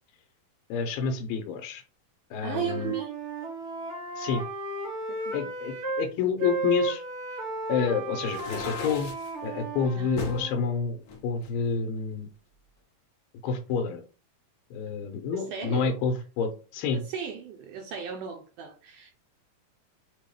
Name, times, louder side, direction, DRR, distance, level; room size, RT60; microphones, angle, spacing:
voice 1, 0.7-1.8 2.3-2.9 4.2-4.4 5.3-7.0 7.7-9.1 9.4-12.3 13.4-14.0 14.7-17.0, left 5 dB, 90° left, 2.5 m, -29 dB
voice 2, 2.4-3.1 5.1-5.5 10.0-10.1 15.3-16.0 16.9-19.1, right 7 dB, 80° right, 1.9 m, -36 dB
Wind instrument woodwind instrument, 2.6-6.1 6.4-10.6, right 2 dB, 60° right, 1.0 m, -34 dB
sound 1, 8.2-9.3 10.2-10.5 11.1-12.1, left 3 dB, 65° left, 2.0 m, -37 dB
6.4 x 2.3 x 3.4 m
omnidirectional pair, 4.2 m